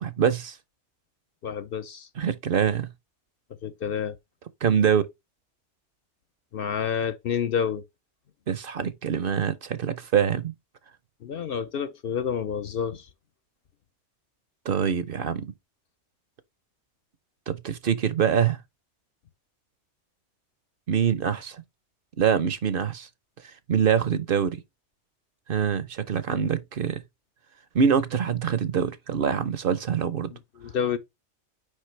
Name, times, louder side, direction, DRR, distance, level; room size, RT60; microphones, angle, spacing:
voice 1, 0.0-0.6 2.2-2.9 4.6-5.1 8.5-10.5 14.6-15.5 17.5-18.6 20.9-21.6 22.2-23.1 23.4-24.6 25.5-27.0 27.7-30.3, right 7 dB, 55° right, 0.7 m, -24 dB
voice 2, 1.4-2.1 3.6-4.2 6.5-7.8 11.2-13.1 30.6-31.0, left 7 dB, 60° left, 0.7 m, -29 dB
6.5 x 5.0 x 3.1 m
omnidirectional pair, 1.2 m